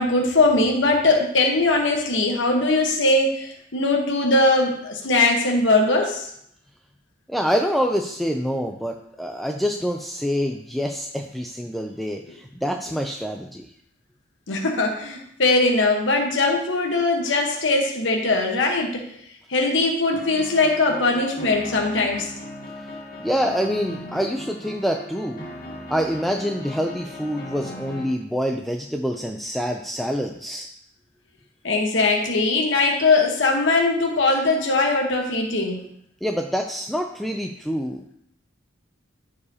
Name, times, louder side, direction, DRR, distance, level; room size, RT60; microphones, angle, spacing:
voice 1, 0.0-6.3 14.5-19.0 19.5-22.3 31.6-35.8, left 2 dB, 65° left, 1 dB, 1.2 m, -20 dB
voice 2, 7.3-13.7 23.2-25.4 25.9-30.7 36.2-38.2, equal, ahead, 3 dB, 0.4 m, -26 dB
sound 1, 20.1-28.1, left 1 dB, 45° left, 1.7 m, -38 dB
14.0 x 4.8 x 2.8 m, 0.72 s
head